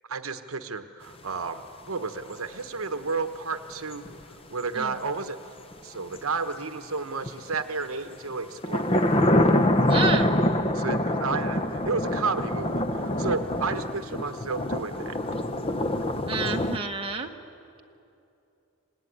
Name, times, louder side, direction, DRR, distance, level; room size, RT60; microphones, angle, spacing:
voice 1, 0.1-4.1 4.5-5.4 5.8-8.9 10.7-15.2, right 4 dB, 70° right, 9 dB, 1.1 m, -32 dB
sound 1, 3.9-4.2 5.7-5.8 6.1-6.2 7.2-7.6 8.6-16.8, left 1 dB, 25° left, 0.7 m, -25 dB
voice 2, 9.9-10.4 16.2-17.3, right 4 dB, 25° right, 2 dB, 1.4 m, -29 dB
26.5 x 19.5 x 9.9 m, 2.8 s
head